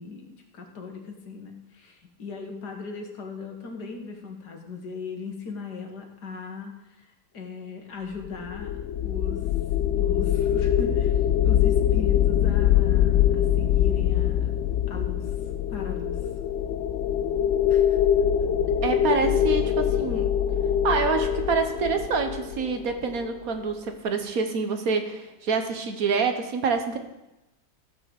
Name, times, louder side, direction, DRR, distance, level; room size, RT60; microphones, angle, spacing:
voice 1, 0.0-6.7 7.0-7.1 7.3-9.5 9.9-14.6 14.9-15.3 15.7-16.2 17.7-18.0, left 4 dB, 85° left, 2 dB, 2.2 m, -38 dB
sound 1, 8.2-23.4, left 10 dB, 70° left, 0.7 m, -23 dB
voice 2, 18.8-20.3 20.8-27.0, right 5 dB, 65° right, 6 dB, 1.5 m, -27 dB
14.5 x 6.2 x 7.0 m, 0.96 s
omnidirectional pair, 1.7 m